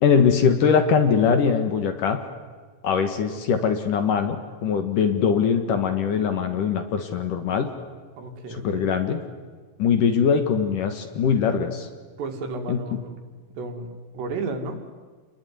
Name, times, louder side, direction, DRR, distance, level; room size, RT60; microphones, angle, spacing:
voice 1, 0.0-2.2 2.8-7.7 8.5-9.2 9.8-11.9 12.7-12.8, left 6 dB, 60° left, 7 dB, 2.7 m, -21 dB
voice 2, 8.2-8.9 12.2-13.2 13.6-13.9 14.1-14.8, right 3 dB, 80° right, 4 dB, 4.6 m, -32 dB
28.5 x 20.5 x 9.6 m, 1.5 s
omnidirectional pair, 5.0 m